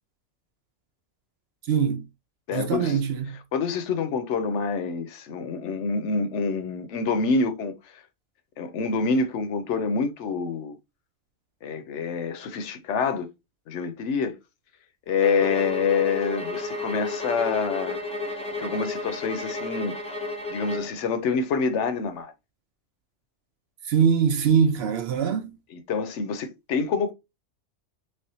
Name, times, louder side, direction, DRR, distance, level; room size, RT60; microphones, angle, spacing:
voice 1, 1.6-2.1 2.5-3.4 23.9-25.6, right 7 dB, 65° right, 0.7 m, -22 dB
voice 2, 2.5-3.0 3.5-7.7 8.6-10.8 11.6-13.3 13.7-14.4 15.1-18.0 18.6-19.9 20.5-22.3 25.7-27.1, left 5 dB, 75° left, 0.9 m, -26 dB
sound 1, 15.2-21.0, left 2 dB, 5° left, 0.6 m, -32 dB
3.4 x 3.4 x 2.7 m
omnidirectional pair, 1.3 m